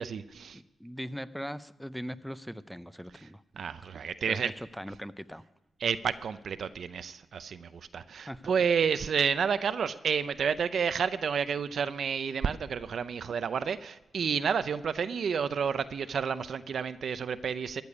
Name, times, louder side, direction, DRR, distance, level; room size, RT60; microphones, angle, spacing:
voice 1, 0.0-0.6 3.1-3.3 3.5-4.5 5.8-17.8, right 6 dB, 70° right, 12 dB, 0.5 m, -30 dB
voice 2, 0.5-3.4 3.9-5.4 8.3-8.5, equal, ahead, 14 dB, 0.6 m, -40 dB
15.0 x 6.9 x 9.7 m, 1.0 s
cardioid pair, 70°, 0 cm